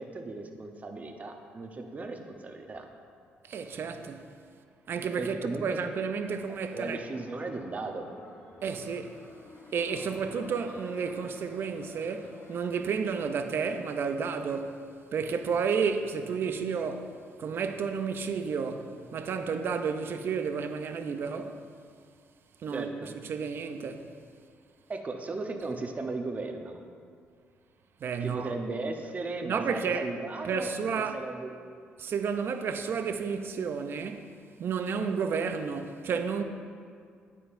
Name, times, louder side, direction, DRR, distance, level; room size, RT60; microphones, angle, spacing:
voice 1, 0.0-2.9 5.2-5.8 6.7-8.1 22.7-23.1 24.9-26.8 28.2-31.6, right 3 dB, 35° right, 0.9 m, -36 dB
voice 2, 3.5-4.3 4.9-7.0 8.6-9.2 9.7-14.8 15.1-21.6 22.6-24.1 28.0-28.5 29.4-30.1 30.4-31.2 32.0-34.3 34.6-36.4, right 6 dB, 60° right, 0.6 m, -31 dB
sound 1, 5.9-14.6, left 2 dB, 70° left, 1.4 m, -53 dB
9.0 x 8.5 x 2.6 m
cardioid pair, 80°, 4 cm